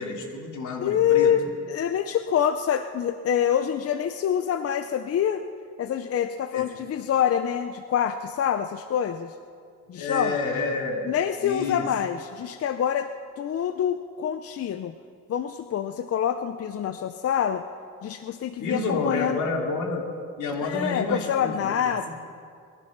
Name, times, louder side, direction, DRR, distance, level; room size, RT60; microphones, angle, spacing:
voice 1, 0.0-1.3 6.5-6.6 10.0-11.1 11.4-11.9 18.6-20.1 20.4-21.7 22.1-22.2, left 3 dB, 80° left, 1 dB, 2.8 m, -29 dB
voice 2, 0.8-5.4 5.8-9.3 9.9-10.4 11.0-13.1 13.4-14.9 15.3-17.6 18.0-19.4 20.6-22.1, left 9 dB, 50° left, 10 dB, 0.6 m, -26 dB
22.0 x 11.0 x 5.9 m, 2.3 s
cardioid pair, 90°, 30 cm